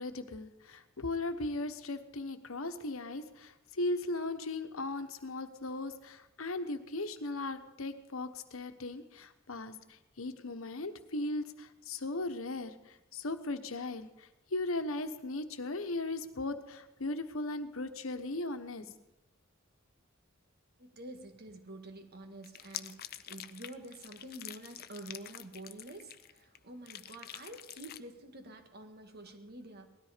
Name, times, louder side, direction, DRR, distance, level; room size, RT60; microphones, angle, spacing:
voice 1, 0.0-3.5 3.8-9.7 10.2-12.7 13.1-14.1 14.5-18.8, left 2 dB, 80° left, 8 dB, 1.2 m, -37 dB
voice 2, 20.8-29.9, right 1 dB, 50° right, 6 dB, 1.7 m, -48 dB
sound 1, 22.4-26.6 26.9-28.0, left 11 dB, 50° left, 0.6 m, -46 dB
18.5 x 13.0 x 5.1 m, 0.98 s
head